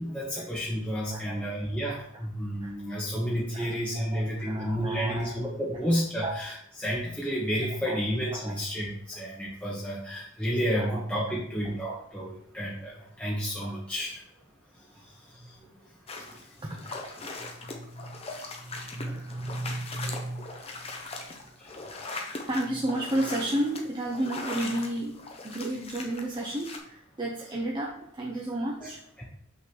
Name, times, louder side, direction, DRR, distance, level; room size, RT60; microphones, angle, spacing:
voice 1, 0.0-6.5 6.8-14.2 15.0-15.5 19.0-19.2 21.6-21.7 22.0-22.2 29.2-29.3, equal, 5° left, -6 dB, 1.1 m, -31 dB
voice 2, 1.1-1.5 2.6-2.7 3.5-5.3 6.2-6.4 7.7-8.0 8.3-8.5 10.7-11.0 11.9-12.0 15.4-15.8 16.2-21.0 22.5-29.0, right 1 dB, 20° right, -2 dB, 0.7 m, -33 dB
sound 1, 16.1-26.8, left 3 dB, 30° left, 0.9 m, -40 dB
5.8 x 3.9 x 6.1 m, 0.68 s
head